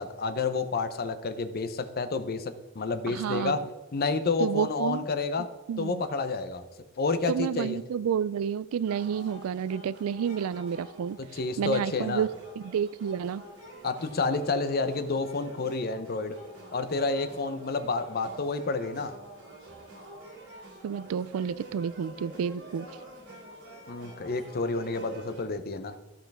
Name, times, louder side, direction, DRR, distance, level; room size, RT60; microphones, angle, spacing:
voice 1, 0.0-3.6 3.9-5.5 5.8-6.6 7.0-7.8 11.2-12.2 13.8-16.4 16.7-19.1 23.9-26.0, left 3 dB, 45° left, 10 dB, 0.7 m, -29 dB
voice 2, 3.1-3.6 4.4-5.1 5.7-6.0 7.3-11.2 11.6-12.3 12.6-13.4 20.8-22.9, right 7 dB, 80° right, 19 dB, 0.3 m, -30 dB
sound 1, 8.9-25.4, right 1 dB, 60° right, 2.9 m, -47 dB
14.0 x 5.6 x 3.5 m, 1.2 s
head